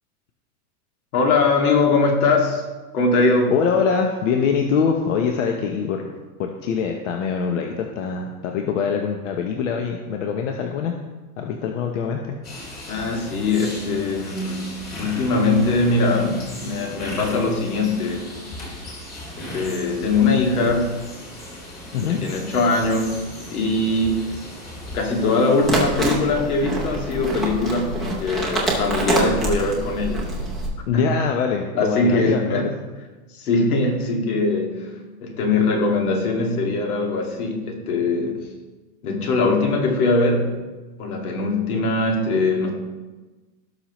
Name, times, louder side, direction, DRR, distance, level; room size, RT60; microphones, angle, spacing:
voice 1, 1.1-2.6 2.9-3.5 12.9-18.3 19.4-21.0 22.1-23.2 23.5-24.3 24.9-30.3 30.9-31.2 31.7-32.7 33.3-34.9 35.2-38.5 39.0-40.5 41.0-42.7, left 3 dB, 70° left, 1 dB, 2.3 m, -21 dB
voice 2, 3.5-6.1 6.4-10.9 11.4-12.4 21.9-22.2 30.9-32.7, left 6 dB, 55° left, 3 dB, 1.0 m, -23 dB
sound 1, 12.4-25.8, left 1 dB, 20° left, 2.1 m, -37 dB
sound 2, 25.6-30.7, right 2 dB, ahead, 0.6 m, -25 dB
17.0 x 5.9 x 3.1 m, 1.2 s
supercardioid pair, 175°, 45 cm